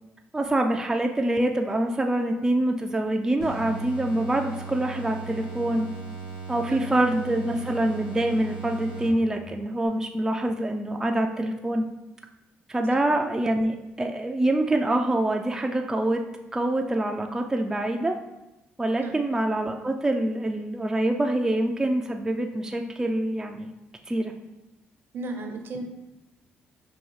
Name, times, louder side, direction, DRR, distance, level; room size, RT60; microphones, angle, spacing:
voice 1, 0.3-5.9 6.5-11.8 12.7-16.2 16.5-18.2 18.8-23.7 24.1-24.3, right 1 dB, 15° right, 3 dB, 0.3 m, -25 dB
sound 1, 3.4-9.5, right 4 dB, 80° left, 1.1 m, -38 dB
voice 2, 6.6-7.0 19.0-19.3 25.1-25.8, right 2 dB, 60° right, 4 dB, 0.6 m, -35 dB
5.5 x 2.3 x 3.1 m, 0.97 s
supercardioid pair, 70°, 4 cm